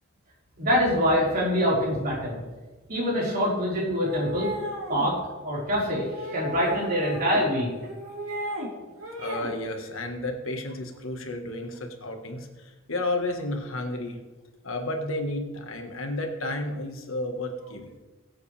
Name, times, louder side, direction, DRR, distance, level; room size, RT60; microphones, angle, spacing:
voice 1, 0.6-2.4 2.9-4.5 4.9-5.2 5.4-7.7, equal, 45° right, -5 dB, 4.8 m, -25 dB
sound 1, 4.0-5.1 6.1-7.4 7.8-8.7 9.0-9.5, equal, 75° right, 3.5 m, -35 dB
voice 2, 9.2-14.2 14.6-18.0, left 2 dB, 70° left, 4 dB, 1.6 m, -32 dB
20.5 x 8.3 x 3.4 m, 1.2 s
head